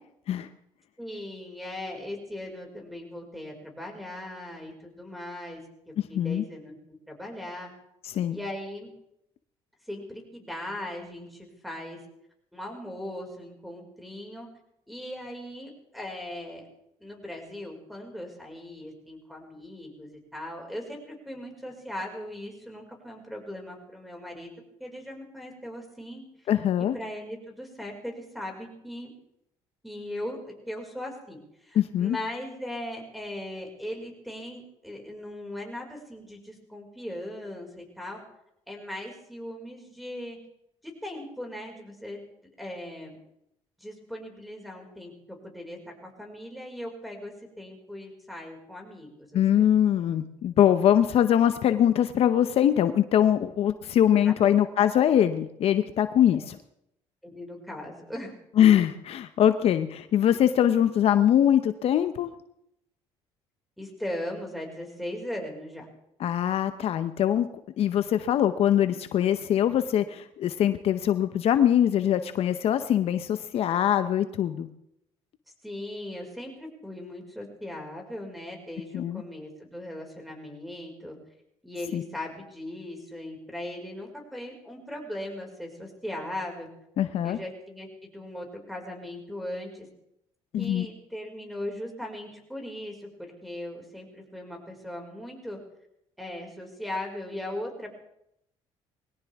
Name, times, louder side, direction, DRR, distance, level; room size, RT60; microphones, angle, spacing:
voice 1, 1.0-6.7 7.1-7.7 8.3-8.9 9.9-12.0 12.5-14.5 14.9-16.7 17.0-24.5 24.8-26.2 26.9-29.1 29.8-38.2 38.7-40.4 41.0-42.3 42.6-43.2 43.8-45.1 45.4-49.7 54.2-54.5 57.2-58.3 63.8-65.9 75.6-81.2 81.6-86.7 87.2-89.9 90.6-95.6 96.2-98.0, left 1 dB, ahead, 2 dB, 5.3 m, -38 dB
voice 2, 6.0-6.4 8.0-8.4 26.5-27.0 31.8-32.2 49.3-56.4 58.6-62.3 66.2-67.5 67.8-74.7 78.9-79.2 81.9-82.0 87.0-87.4 90.5-90.9, left 10 dB, 60° left, 10 dB, 0.8 m, -23 dB
21.5 x 17.5 x 3.6 m, 0.79 s
supercardioid pair, 80°, 11 cm